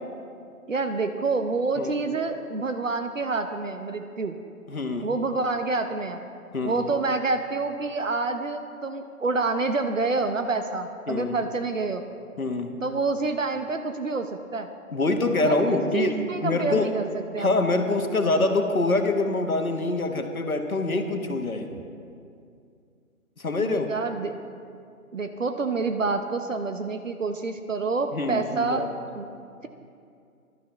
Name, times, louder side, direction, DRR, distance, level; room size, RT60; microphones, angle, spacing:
voice 1, 0.7-4.3 5.0-6.2 6.6-12.0 12.8-14.7 15.4-17.6 23.6-24.4 25.1-28.9 29.1-29.3, right 3 dB, 60° right, 7 dB, 0.8 m, -28 dB
voice 2, 4.7-5.1 6.5-6.9 11.1-11.4 12.4-12.7 14.9-16.1 16.4-16.9 17.4-21.7 23.4-23.9 28.1-28.9, left 2 dB, 70° left, 5 dB, 1.4 m, -25 dB
18.0 x 12.0 x 3.2 m, 2.4 s
figure-of-eight pair, 150°, 43 cm